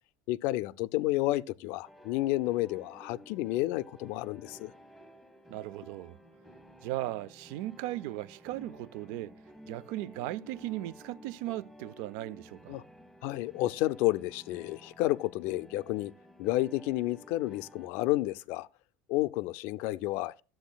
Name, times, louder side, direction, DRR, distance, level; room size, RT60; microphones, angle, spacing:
voice 1, 0.3-4.7 12.7-12.8 13.2-16.1 16.4-18.7 19.1-20.4, left 17 dB, 60° left, 0.4 m, -31 dB
sound 1, 1.8-17.9, equal, ahead, 1.0 m, -53 dB
voice 2, 5.5-6.2 6.8-9.3 9.7-12.8, right 16 dB, 70° right, 0.3 m, -37 dB
11.5 x 7.7 x 2.2 m
cardioid pair, 150°, 4 cm